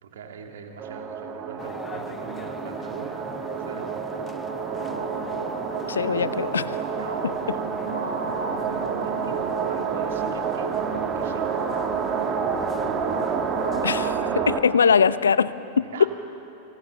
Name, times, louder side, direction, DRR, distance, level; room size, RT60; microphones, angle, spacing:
voice 1, 0.0-3.4 3.6-4.0 6.1-6.3 7.0-7.7 8.7-11.5 15.9-16.1, right 6 dB, 60° right, 3 dB, 2.9 m, -41 dB
sound 1, 0.8-14.6, right 7 dB, 30° right, 1.9 m, -29 dB
sound 2, 1.6-14.1, left 6 dB, 20° left, 0.6 m, -41 dB
sound 3, 4.5-14.5, right 2 dB, 80° right, 8.0 m, -36 dB
voice 2, 5.9-6.8 13.8-14.2 14.5-15.8, left 6 dB, 70° left, 16 dB, 0.7 m, -21 dB
29.0 x 24.0 x 7.2 m, 2.9 s
figure-of-eight pair, 90°, 0 cm